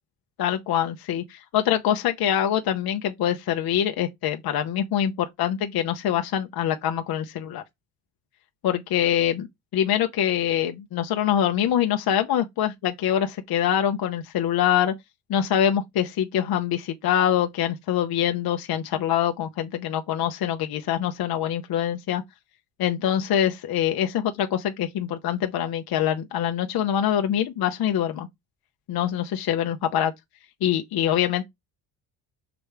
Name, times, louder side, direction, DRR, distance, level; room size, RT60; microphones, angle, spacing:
voice 1, 0.4-7.6 8.6-9.5 9.7-14.9 15.3-22.2 22.8-28.3 28.9-30.1 30.6-31.4, left 10 dB, 60° left, 0.9 m, -24 dB
6.0 x 3.3 x 4.8 m
cardioid pair, 90°, 42 cm